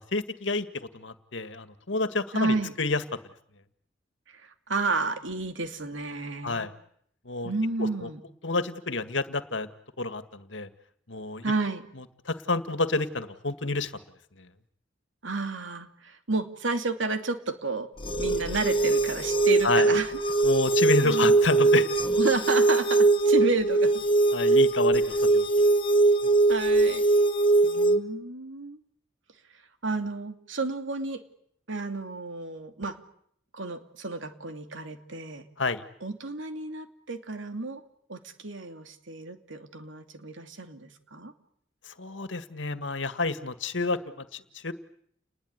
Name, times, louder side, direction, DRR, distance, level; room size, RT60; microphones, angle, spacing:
voice 1, 0.0-3.0 6.4-6.7 7.3-7.5 7.8-8.1 8.4-9.7 10.0-10.7 11.1-11.5 12.3-13.9 14.4-14.5 19.6-19.9 20.4-21.9 24.3-25.5 35.6-35.8 41.8-44.7, left 3 dB, 75° left, 11 dB, 1.9 m, -29 dB
voice 2, 2.3-2.7 4.3-6.7 7.4-8.2 11.4-11.8 15.2-17.9 18.2-20.1 21.0-21.4 22.2-23.9 24.4-24.6 26.5-27.0 27.6-28.8 29.8-31.2 31.7-33.0 33.5-35.4 36.0-37.8 38.1-41.3, right 3 dB, 85° right, 7 dB, 2.7 m, -31 dB
sound 1, 18.0-28.0, right 3 dB, 25° left, 1.6 m, -22 dB
30.0 x 20.5 x 9.7 m, 0.69 s
head